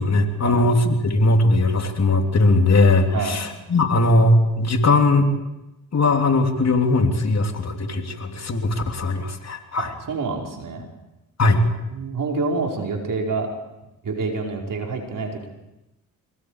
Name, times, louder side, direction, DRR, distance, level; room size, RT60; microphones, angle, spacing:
voice 1, 0.0-5.3 5.9-9.9 11.4-11.6, left 2 dB, 45° left, 4 dB, 3.4 m, -19 dB
voice 2, 9.8-10.9 11.9-13.5 14.0-15.5, right 4 dB, 60° right, 0 dB, 5.2 m, -27 dB
25.0 x 21.5 x 5.0 m, 0.95 s
supercardioid pair, 55°, 37 cm